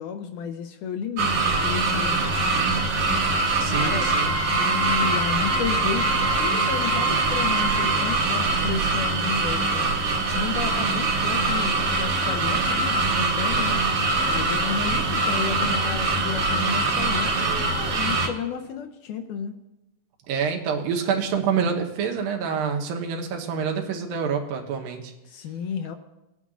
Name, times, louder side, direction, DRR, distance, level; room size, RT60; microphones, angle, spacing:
voice 1, 0.0-2.9 3.8-4.1 4.5-9.9 10.3-13.8 14.3-19.6 25.3-26.0, left 7 dB, 80° left, 6 dB, 1.9 m, -32 dB
sound 1, 1.2-18.3, right 3 dB, 60° right, 1.8 m, -23 dB
voice 2, 3.6-4.4 20.3-25.1, right 6 dB, 90° right, 3 dB, 2.8 m, -27 dB
Wind instrument woodwind instrument, 3.7-8.2, right 2 dB, 35° left, 1.0 m, -30 dB
18.5 x 9.1 x 2.5 m, 0.97 s
omnidirectional pair, 4.0 m